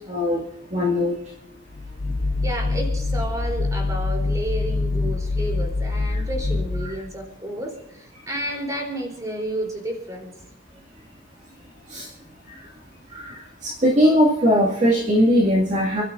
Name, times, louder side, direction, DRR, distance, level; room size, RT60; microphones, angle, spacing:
voice 1, 0.1-0.4 0.7-1.2 6.1-6.2 6.8-6.9 11.9-12.1 13.1-16.0, equal, 35° right, -4 dB, 2.4 m, -20 dB
sound 1, 1.7-7.2, left 3 dB, 35° left, 0.5 m, -25 dB
voice 2, 2.4-10.3, right 1 dB, 15° right, 2 dB, 3.9 m, -31 dB
30.0 x 12.5 x 2.7 m, 0.90 s
head